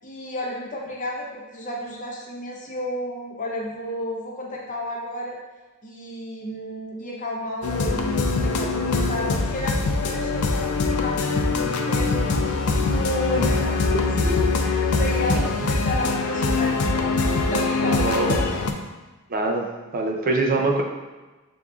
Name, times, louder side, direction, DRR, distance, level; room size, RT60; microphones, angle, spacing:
voice 1, 0.0-5.4 5.8-18.5, left 1 dB, 35° left, -3 dB, 0.7 m, -32 dB
sound 1, 7.6-18.7, left 3 dB, 75° left, 0.4 m, -23 dB
voice 2, 15.3-15.7 18.0-18.6 19.3-19.7 19.9-20.8, right 2 dB, 40° right, 1 dB, 0.4 m, -24 dB
6.8 x 2.5 x 2.3 m, 1.2 s
head